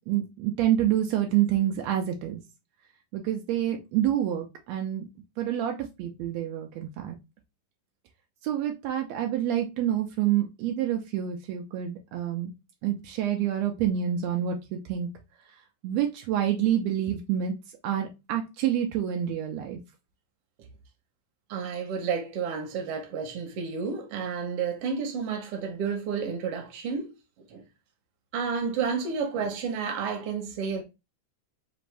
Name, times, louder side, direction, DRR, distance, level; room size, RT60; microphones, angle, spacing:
voice 1, 0.1-2.4 3.1-5.1 5.4-7.1 8.4-12.5 12.8-15.1 15.8-17.5 17.8-19.8, right 10 dB, 90° right, 1.5 m, -27 dB
voice 2, 21.5-27.1 27.5-27.6 28.3-30.8, right 6 dB, 70° right, 1.4 m, -31 dB
4.9 x 2.6 x 3.2 m
omnidirectional pair, 3.7 m